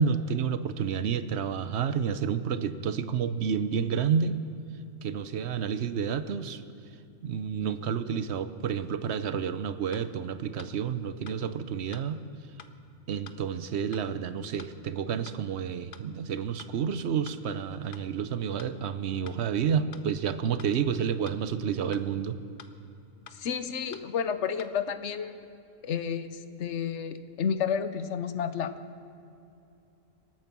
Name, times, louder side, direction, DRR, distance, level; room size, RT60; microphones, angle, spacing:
voice 1, 0.0-4.4 5.0-6.6 7.2-12.2 13.1-22.4, right 7 dB, 65° right, 12 dB, 1.0 m, -30 dB
sound 1, 9.9-10.1 10.6-10.7 11.3-11.4 11.9-12.1 12.6-12.7 13.3-13.4 13.9-14.1 14.6-14.7 15.3-15.4 15.9-16.1 16.6-16.7 17.3-17.4 17.9-18.1 18.6-18.7 19.3-19.4 19.9-20.1 20.6-20.7 21.3-21.4 21.9-22.1 22.6-22.7 23.3-23.4 23.9-24.1 24.6-24.7, left 7 dB, 50° left, 0.9 m, -48 dB
voice 2, 23.3-25.4 25.8-28.7, left 7 dB, 70° left, 11 dB, 1.1 m, -31 dB
25.5 x 9.2 x 6.0 m, 2.7 s
omnidirectional pair, 1.3 m